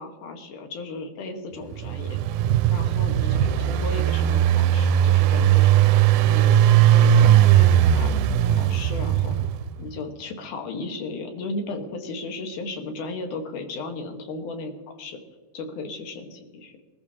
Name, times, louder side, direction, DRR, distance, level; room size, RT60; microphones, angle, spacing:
voice 1, 0.0-2.2 2.7-8.1 8.4-9.4 9.8-15.2 15.5-16.7, left 3 dB, 75° left, 4 dB, 2.9 m, -35 dB
Engine, 1.7-9.8, right 11 dB, 80° right, 2.0 m, -18 dB
22.5 x 14.0 x 2.8 m, 1.4 s
omnidirectional pair, 3.7 m